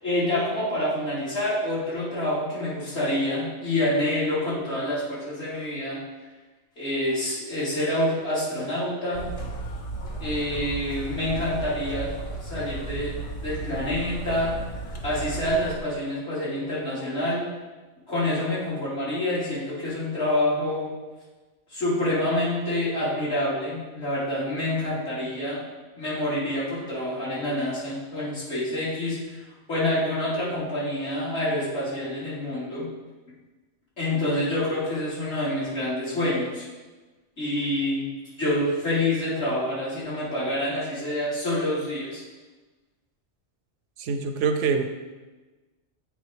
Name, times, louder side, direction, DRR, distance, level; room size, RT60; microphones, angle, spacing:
voice 1, 0.0-6.0 6.8-9.3 10.2-12.1 12.4-14.5 15.0-17.4 18.1-20.9 21.7-25.6 26.0-29.4 29.7-32.9 34.0-36.7 37.4-38.0 38.4-42.2, left 1 dB, 60° left, -9 dB, 3.0 m, -27 dB
sound 1, 9.1-15.8, right 2 dB, 35° left, 0.6 m, -34 dB
voice 2, 44.0-44.8, right 5 dB, 75° right, 7 dB, 0.9 m, -24 dB
8.1 x 3.7 x 4.9 m, 1.2 s
omnidirectional pair, 1.3 m